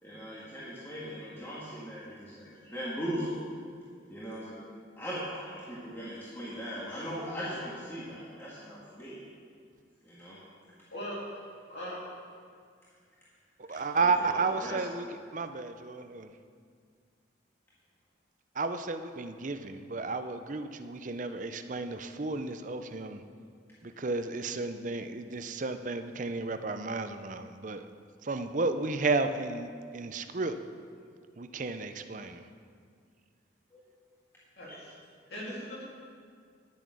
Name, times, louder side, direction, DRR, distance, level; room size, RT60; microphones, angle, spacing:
voice 1, 0.0-3.4 4.1-4.6 5.0-9.2 10.0-10.4 13.9-14.8 33.7-33.8 34.7-34.8, equal, 15° left, -9 dB, 1.7 m, -39 dB
voice 2, 10.9-11.4 11.7-12.1 34.6-35.0 35.3-35.8, equal, 60° left, -6 dB, 2.9 m, -39 dB
voice 3, 13.6-15.1 15.3-16.3 18.5-23.2 23.8-27.9 28.2-30.6 31.4-32.5, right 3 dB, 40° right, 9 dB, 0.6 m, -32 dB
10.5 x 9.0 x 6.2 m, 2.1 s
head